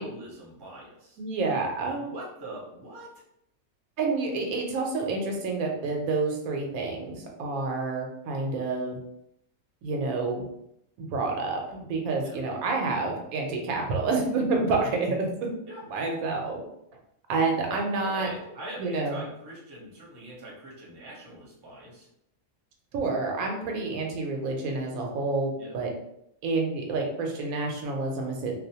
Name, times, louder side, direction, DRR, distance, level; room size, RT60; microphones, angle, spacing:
voice 1, 0.0-1.2 1.9-3.1 12.2-12.4 15.7-15.8 18.0-22.1 25.6-25.8, right 1 dB, 25° right, -4 dB, 0.5 m, -43 dB
voice 2, 1.2-2.1 4.0-9.0 9.8-10.4 11.0-15.2 15.9-16.6 17.3-18.3 18.8-19.2 22.9-25.9 26.4-28.5, right 3 dB, 90° right, 1 dB, 1.1 m, -28 dB
2.5 x 2.0 x 2.7 m, 0.77 s
omnidirectional pair, 1.5 m